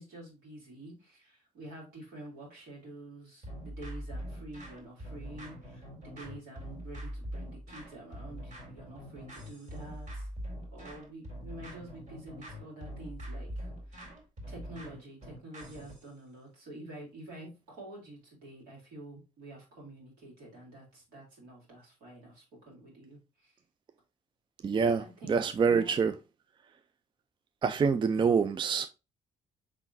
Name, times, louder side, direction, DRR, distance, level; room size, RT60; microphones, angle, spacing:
voice 1, 0.0-10.3 10.7-14.1 14.5-23.5 25.0-25.9, right 1 dB, 70° right, 2.7 m, -48 dB
sound 1, 3.4-16.1, equal, 50° right, 2.4 m, -43 dB
voice 2, 24.6-26.2 27.6-28.9, right 5 dB, 30° right, 0.4 m, -26 dB
5.0 x 3.7 x 2.6 m
hypercardioid pair, 55°, 17 cm